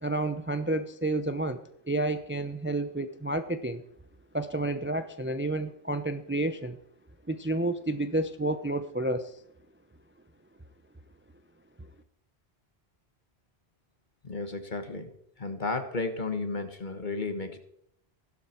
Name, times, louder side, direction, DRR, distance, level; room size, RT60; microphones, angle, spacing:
voice 1, 0.0-1.6 1.9-3.8 4.3-6.8 7.3-9.3, right 2 dB, 15° right, 10 dB, 0.6 m, -30 dB
voice 2, 14.2-15.1 15.4-17.6, left 3 dB, 45° left, 8 dB, 1.5 m, -33 dB
15.5 x 12.0 x 4.4 m, 0.71 s
omnidirectional pair, 1.1 m